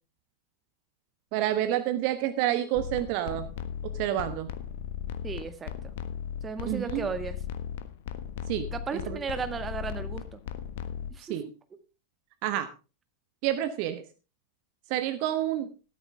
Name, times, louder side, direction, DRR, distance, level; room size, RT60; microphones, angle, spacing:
voice 1, 1.3-3.5 3.9-4.5 6.6-7.1 8.5-9.2 11.2-11.4 12.4-12.7 13.4-14.0 14.9-15.7, right 12 dB, 45° right, 11 dB, 1.2 m, -29 dB
sound 1, 2.7-11.1, left 9 dB, 50° left, 1.2 m, -37 dB
voice 2, 5.2-5.7 6.4-7.4 8.7-10.4 11.1-11.8, right 5 dB, 20° right, 10 dB, 1.7 m, -35 dB
14.0 x 13.0 x 3.4 m, 0.31 s
figure-of-eight pair, 90°, 0 cm